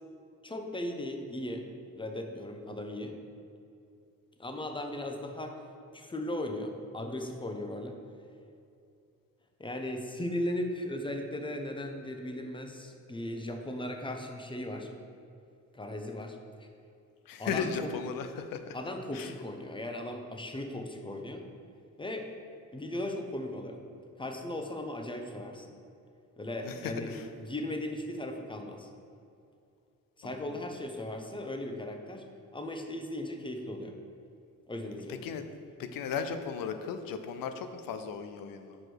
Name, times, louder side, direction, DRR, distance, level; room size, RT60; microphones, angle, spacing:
voice 1, 0.4-1.6 2.0-3.1 4.4-5.6 5.9-7.9 9.6-14.9 15.7-16.7 17.4-17.9 18.7-21.4 22.0-22.3 22.7-23.8 24.2-25.7 26.4-27.1 27.4-28.9 30.2-32.3 32.5-34.0 34.7-35.2, left 1 dB, 15° left, 4 dB, 0.8 m, -37 dB
voice 2, 17.3-18.8 19.1-19.3 26.6-27.3 30.2-30.5 35.1-35.4 35.8-38.8, left 6 dB, 90° left, 8 dB, 0.6 m, -36 dB
6.3 x 4.9 x 4.6 m, 2.6 s
cardioid pair, 80°, 33 cm